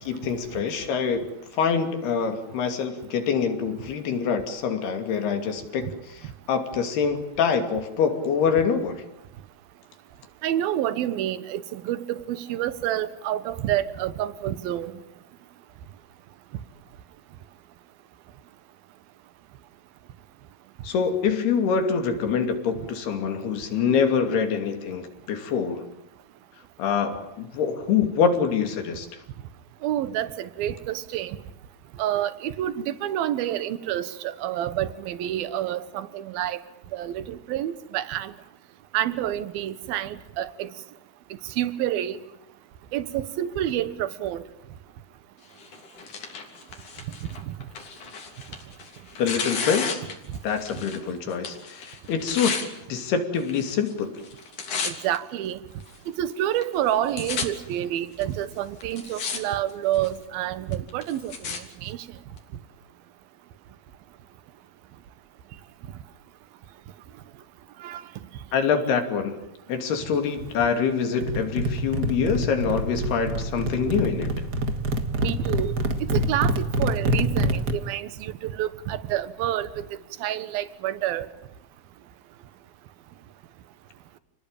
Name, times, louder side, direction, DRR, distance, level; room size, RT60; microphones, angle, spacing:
voice 1, 0.1-1.2 1.5-9.0 20.8-25.8 26.8-29.1 49.2-50.0 50.4-54.1 68.5-69.4 69.7-74.3, left 6 dB, 75° left, 4.7 m, -25 dB
voice 2, 10.4-14.9 29.8-31.4 32.0-36.6 36.9-38.3 38.9-40.7 41.6-42.2 42.9-44.4 54.8-55.6 56.2-62.0 67.8-68.0 75.2-75.7 76.1-79.7 80.2-81.3, right 12 dB, 70° right, 3.0 m, -28 dB
Tearing, 45.6-51.0 51.3-52.7 53.4-53.9 54.2-55.2 55.8-55.9 56.6-56.7 56.9-57.5 58.2-58.3 58.8-59.4 59.7-60.2 60.7-61.6 62.4-62.5, left 5 dB, 50° left, 4.5 m, -33 dB
sound 1, 71.2-77.7, right 1 dB, 40° right, 1.6 m, -26 dB
30.0 x 20.0 x 9.1 m
omnidirectional pair, 4.7 m